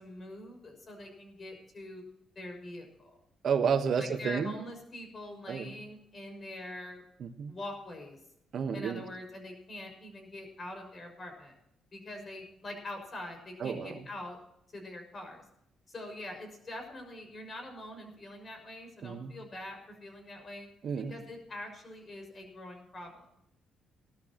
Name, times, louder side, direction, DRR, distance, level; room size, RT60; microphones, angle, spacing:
voice 1, 0.0-2.0 2.3-3.1 4.0-7.0 7.5-8.2 8.7-11.5 11.9-14.4 14.7-15.4 15.9-20.7 20.9-23.3, left 1 dB, 40° left, 4 dB, 6.2 m, -44 dB
voice 2, 3.4-4.5 5.5-5.8 7.2-7.5 8.5-9.0 13.6-14.1 19.0-19.3 20.8-21.1, right 6 dB, 60° right, 8 dB, 1.3 m, -31 dB
18.0 x 13.0 x 3.0 m, 0.80 s
cardioid pair, 90°, 0 cm